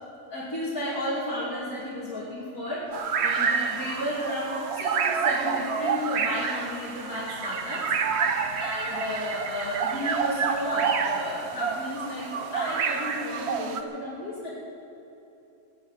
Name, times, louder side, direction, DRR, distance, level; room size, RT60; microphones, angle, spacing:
voice 1, 0.3-2.8 3.2-7.9 8.2-14.5, left 1 dB, 65° left, -10 dB, 3.2 m, -33 dB
sound 1, 2.9-13.8, right 6 dB, 50° right, 0.9 m, -28 dB
17.5 x 11.0 x 7.3 m, 2.9 s
omnidirectional pair, 1.7 m